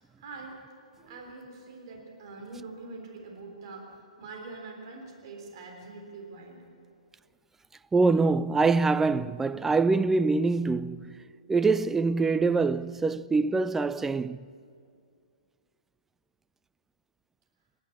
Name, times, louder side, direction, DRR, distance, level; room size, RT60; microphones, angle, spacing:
voice 1, 0.2-0.6 1.1-6.6, right 3 dB, 50° right, 3.6 m, -44 dB
voice 2, 7.9-11.2 11.5-14.4, right 3 dB, 10° right, 0.4 m, -24 dB
26.5 x 12.0 x 8.4 m
figure-of-eight pair, 115°, 4 cm